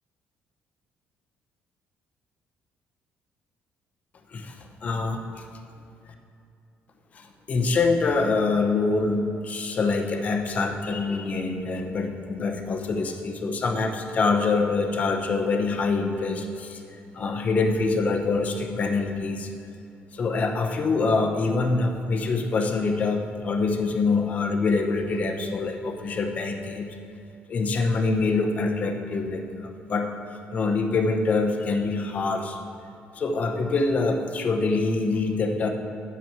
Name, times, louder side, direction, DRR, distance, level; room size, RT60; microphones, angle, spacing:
voice 1, 4.3-5.4 7.1-19.5 20.1-27.0 27.5-30.1 30.5-32.6 33.1-35.7, left 3 dB, 35° left, 4 dB, 0.8 m, -25 dB
9.0 x 7.0 x 4.5 m, 2.7 s
cardioid pair, 160°, 4 cm